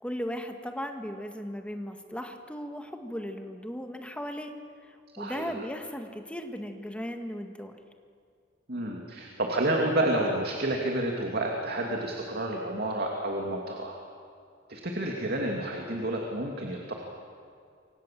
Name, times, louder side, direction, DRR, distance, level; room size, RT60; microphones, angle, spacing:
voice 1, 0.0-4.5 4.8-7.7, equal, 5° left, 5 dB, 1.9 m, -37 dB
voice 2, 5.2-5.5 8.7-14.0 14.7-16.9, right 1 dB, 55° right, 0 dB, 2.7 m, -30 dB
28.0 x 25.5 x 7.6 m, 2.4 s
head